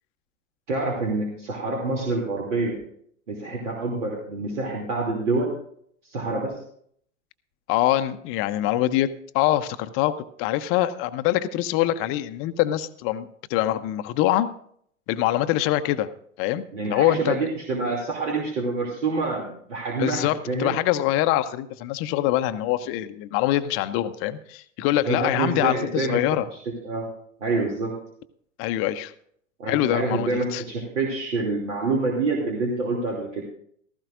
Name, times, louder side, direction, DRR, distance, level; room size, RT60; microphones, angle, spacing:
voice 1, 0.7-2.8 3.3-5.5 6.0-6.6 16.7-20.8 25.1-26.2 26.8-27.1 27.4-27.9 29.6-33.5, right 3 dB, 65° right, -1 dB, 2.8 m, -27 dB
voice 2, 7.7-9.1 9.3-14.5 15.1-16.1 16.4-17.4 20.0-26.5 28.6-29.1 29.7-30.6, left 13 dB, 35° left, 11 dB, 0.7 m, -24 dB
16.0 x 14.5 x 2.5 m, 0.64 s
figure-of-eight pair, 90°, 40 cm